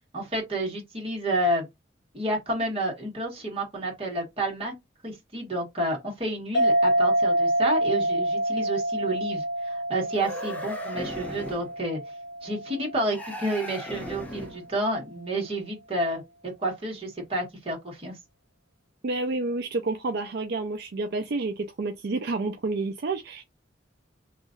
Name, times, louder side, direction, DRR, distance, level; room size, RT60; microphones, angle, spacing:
voice 1, 0.1-1.7 2.1-4.7 5.0-12.0 12.4-16.2 16.6-18.1, right 1 dB, 30° right, 1.6 m, -30 dB
sound 1, 6.5-13.6, right 1 dB, 65° left, 0.4 m, -27 dB
sound 2, 10.1-11.7 13.1-14.7, left 1 dB, 10° left, 0.6 m, -38 dB
voice 2, 19.0-23.4, right 3 dB, 60° right, 0.5 m, -29 dB
3.0 x 2.5 x 3.8 m
head